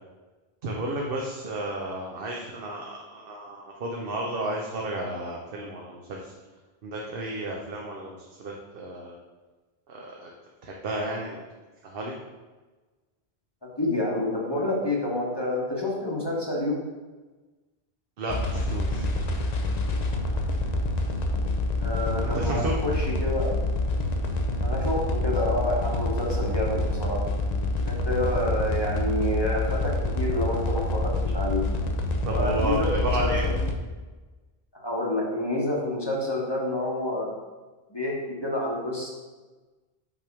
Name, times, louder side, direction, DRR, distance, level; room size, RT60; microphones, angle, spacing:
voice 1, 0.6-6.3 6.8-9.1 9.9-10.3 10.6-11.4 11.8-12.1 18.2-19.1 22.2-22.8 32.2-33.4, right 1 dB, 65° right, -1 dB, 0.9 m, -32 dB
voice 2, 13.6-16.8 21.8-23.5 24.6-27.2 27.9-31.6 32.3-33.6 34.7-37.3 37.9-39.1, left 1 dB, 25° left, -3 dB, 1.1 m, -28 dB
sound 1, 18.3-33.7, left 2 dB, 45° left, 0.7 m, -27 dB
5.8 x 3.4 x 5.9 m, 1.3 s
omnidirectional pair, 1.1 m